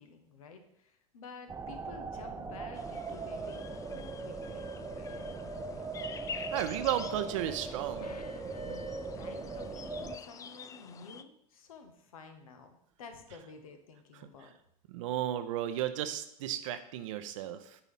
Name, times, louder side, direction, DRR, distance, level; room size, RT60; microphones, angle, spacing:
voice 1, 0.0-5.3 5.6-5.8 8.6-12.7 13.0-14.5, left 5 dB, 65° left, 7 dB, 1.2 m, -51 dB
sound 1, 1.5-10.2, right 4 dB, 15° right, 0.7 m, -40 dB
sound 2, 2.7-11.2, left 6 dB, 15° left, 0.4 m, -48 dB
voice 2, 6.5-8.1 14.2-14.3 14.9-17.8, right 11 dB, 55° right, 9 dB, 0.8 m, -34 dB
sound 3, 8.0-9.8 10.2-10.3, left 3 dB, 90° left, 0.5 m, -49 dB
9.8 x 4.0 x 5.5 m, 0.73 s
figure-of-eight pair, 80°, 19 cm